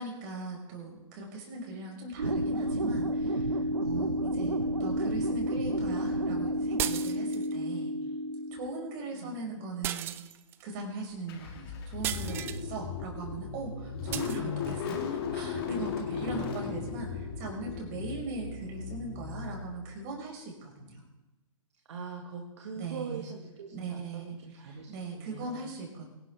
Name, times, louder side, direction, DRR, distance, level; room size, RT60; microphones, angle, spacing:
voice 1, 0.0-7.9 8.5-10.1 10.6-21.0 22.7-23.3 23.7-24.2 24.7-26.1, right 3 dB, 35° right, 0 dB, 5.1 m, -40 dB
sound 1, 2.2-8.8, right 1 dB, 75° right, 1.4 m, -30 dB
sound 2, 6.8-7.5 9.8-10.6 12.0-12.6 14.1-14.4, right 12 dB, 15° right, 0.3 m, -35 dB
Car / Engine starting, 11.3-20.0, left 6 dB, 45° left, 2.5 m, -36 dB
voice 2, 16.2-16.6 21.9-25.7 26.0-26.1, right 5 dB, 55° right, 1 dB, 1.9 m, -42 dB
24.0 x 11.0 x 3.5 m, 1.1 s
figure-of-eight pair, 125°, 17 cm